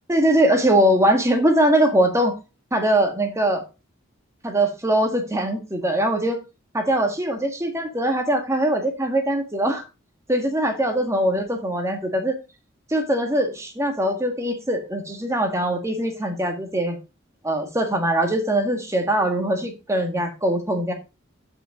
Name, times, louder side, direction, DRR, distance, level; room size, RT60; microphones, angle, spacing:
voice 1, 0.1-2.3 2.7-3.6 4.4-6.4 6.7-9.8 10.3-12.4 12.9-17.0 17.4-20.9, right 1 dB, 15° right, 4 dB, 1.8 m, -22 dB
12.5 x 5.4 x 3.8 m, 0.29 s
head